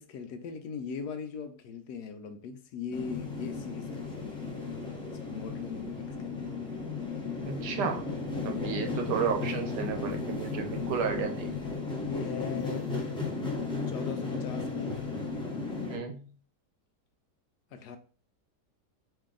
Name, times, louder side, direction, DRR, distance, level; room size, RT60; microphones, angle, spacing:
voice 1, 0.0-4.6 5.1-6.6 12.0-12.9 13.9-15.0 17.7-18.0, left 5 dB, 75° left, 1.1 m, -39 dB
sound 1, 2.9-16.0, left 4 dB, 5° left, 0.6 m, -35 dB
voice 2, 7.5-8.0 8.4-11.5 15.9-16.3, right 7 dB, 85° right, 1.4 m, -32 dB
4.9 x 2.6 x 3.7 m
omnidirectional pair, 1.8 m